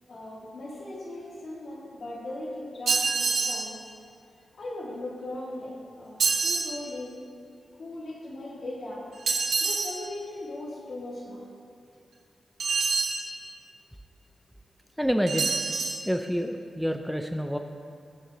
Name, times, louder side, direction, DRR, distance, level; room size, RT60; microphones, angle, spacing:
voice 1, 0.1-3.9 4.5-7.2 7.8-9.0 9.6-11.4, left 1 dB, 65° left, -6 dB, 3.2 m, -38 dB
sound 1, 2.9-3.7 6.2-6.7 9.3-10.0 12.6-13.2 15.3-16.0, right 4 dB, 75° right, 1.0 m, -26 dB
voice 2, 15.0-15.5 16.1-17.6, equal, ahead, 5 dB, 0.5 m, -27 dB
22.0 x 7.4 x 3.1 m, 2.4 s
wide cardioid pair, 100°, 0 cm